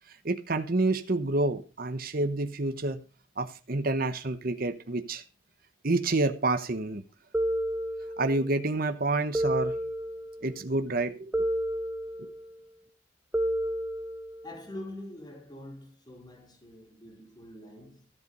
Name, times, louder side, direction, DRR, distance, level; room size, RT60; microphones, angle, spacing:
voice 1, 0.2-3.0 3.4-5.2 5.8-7.0 8.2-9.7 10.4-11.4, right 2 dB, 50° right, 1.0 m, -28 dB
sound 1, 7.3-8.5 9.3-10.5 11.3-12.5 13.3-14.5, right 1 dB, 10° right, 1.1 m, -30 dB
voice 2, 14.4-18.1, left 1 dB, 20° left, 4.3 m, -44 dB
13.5 x 8.0 x 5.4 m
head